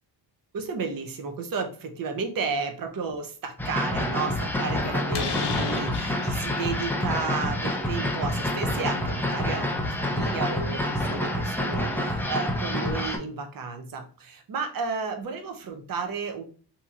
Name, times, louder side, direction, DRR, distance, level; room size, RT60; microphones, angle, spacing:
voice 1, 0.5-16.4, right 5 dB, 50° right, 5 dB, 0.7 m, -33 dB
sound 1, 3.6-13.2, left 1 dB, 5° left, 0.4 m, -28 dB
Slam, 4.3-12.9, left 5 dB, 60° left, 0.8 m, -39 dB
2.9 x 2.8 x 3.6 m, 0.40 s
wide cardioid pair, 130°, 44 cm